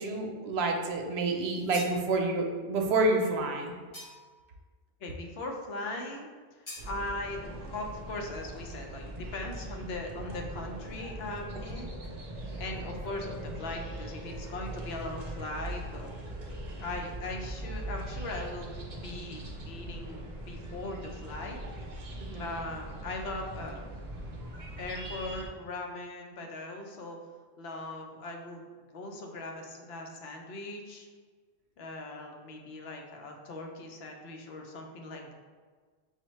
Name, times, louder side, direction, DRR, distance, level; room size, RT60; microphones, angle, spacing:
voice 1, 0.0-3.7 22.3-22.4, right 2 dB, 75° right, 2 dB, 0.8 m, -28 dB
sound 1, 1.4-2.0 3.9-4.4 6.7-6.9, left 1 dB, 30° left, 0.6 m, -44 dB
voice 2, 5.0-11.9 12.3-16.1 16.8-21.6 22.3-23.8 24.8-27.2 27.6-28.6 28.9-31.1 31.8-35.3, left 2 dB, 70° left, 2 dB, 0.8 m, -39 dB
sound 2, 6.8-25.5, right 1 dB, 45° right, 0.6 m, -41 dB
5.6 x 2.2 x 3.0 m, 1.5 s
omnidirectional pair, 1.1 m